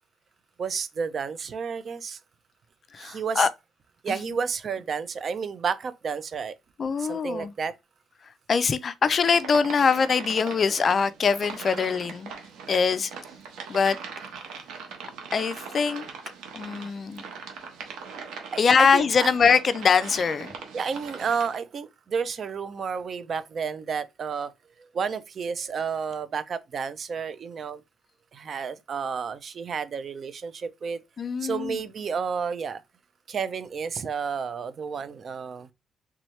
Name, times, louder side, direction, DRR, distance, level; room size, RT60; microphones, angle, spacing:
voice 1, 0.6-2.2 3.0-3.5 4.0-6.5 7.0-7.7 18.5-19.3 20.7-24.5 24.8-27.8 28.3-31.0 31.4-32.8 33.3-35.7, right 6 dB, 50° right, 0.4 m, -31 dB
voice 2, 2.9-3.5 4.1-4.4 6.8-7.5 8.5-12.3 12.7-13.1 13.7-14.0 15.3-16.1 16.5-17.2 18.6-20.5 31.2-31.8, left 5 dB, 40° left, 0.4 m, -23 dB
sound 1, 9.2-21.6, right 5 dB, 90° right, 1.0 m, -40 dB
3.5 x 2.9 x 3.1 m
cardioid pair, 110°, 0 cm